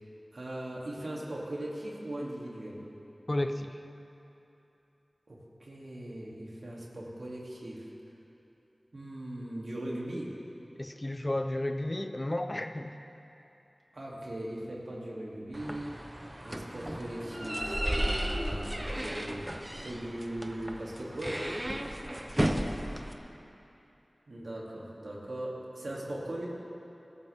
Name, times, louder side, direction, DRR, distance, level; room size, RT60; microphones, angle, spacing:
voice 1, 0.3-2.8 5.3-7.9 8.9-10.4 13.9-15.9 16.4-19.5 19.8-21.4 24.3-26.5, right 1 dB, 75° right, -4 dB, 3.1 m, -39 dB
voice 2, 3.3-3.8 10.8-13.0 22.5-22.8, left 1 dB, 35° left, 7 dB, 0.9 m, -33 dB
sound 1, 15.5-23.1, right 1 dB, 20° right, 1.0 m, -34 dB
26.0 x 14.0 x 3.7 m, 2.9 s
wide cardioid pair, 65°, 0 cm